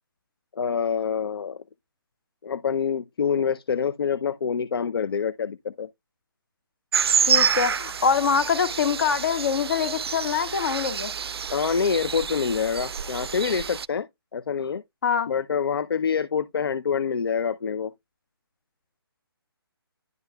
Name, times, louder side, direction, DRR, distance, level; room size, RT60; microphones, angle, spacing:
voice 1, 0.6-1.6 2.4-5.9 11.5-14.1 14.3-14.8 15.3-17.9, left 6 dB, 65° left, 0.6 m, -26 dB
sound 1, 6.9-13.9, right 7 dB, 75° right, 0.4 m, -27 dB
voice 2, 7.3-11.1 15.0-15.3, left 6 dB, 50° left, 1.7 m, -24 dB
10.5 x 5.3 x 2.2 m
hypercardioid pair, 165°, 13 cm